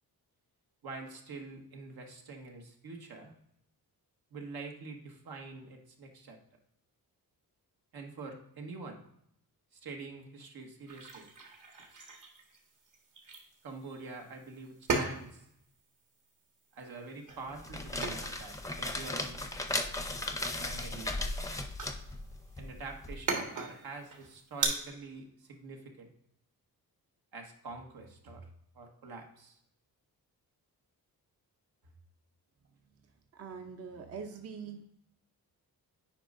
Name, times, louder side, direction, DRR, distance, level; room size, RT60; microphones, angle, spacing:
voice 1, 0.8-3.3 4.3-6.4 7.9-9.0 9.7-11.3 11.8-11.9 13.6-15.4 16.7-19.5 20.6-21.2 22.6-26.1 27.3-28.4 28.7-29.6, right 3 dB, 80° right, 2 dB, 1.4 m, -46 dB
sound 1, 10.9-24.7, right 4 dB, 55° right, 1.6 m, -40 dB
sound 2, 17.5-23.1, left 2 dB, 10° left, 0.6 m, -37 dB
voice 2, 33.3-34.8, right 6 dB, 40° right, 5 dB, 0.7 m, -43 dB
8.9 x 5.2 x 2.5 m, 0.73 s
wide cardioid pair, 125°, 37 cm